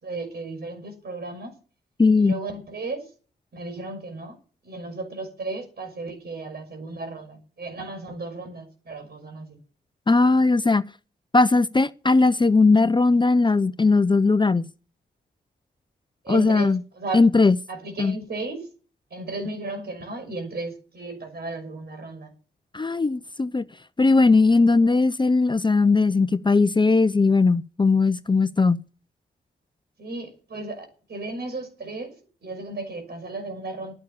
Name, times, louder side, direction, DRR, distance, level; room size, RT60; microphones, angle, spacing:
voice 1, 0.0-1.6 2.2-3.1 3.5-4.4 4.6-9.6 16.2-17.2 17.7-18.7 19.1-22.3 30.0-32.1 32.4-33.9, right 3 dB, 60° right, 6.2 m, -35 dB
voice 2, 2.0-2.4 10.1-10.8 11.3-14.7 16.3-16.8 17.1-17.6 18.0-18.1 22.7-23.6 24.0-28.8, left 3 dB, 25° left, 0.7 m, -19 dB
11.5 x 10.0 x 7.0 m
supercardioid pair, 50°, 19 cm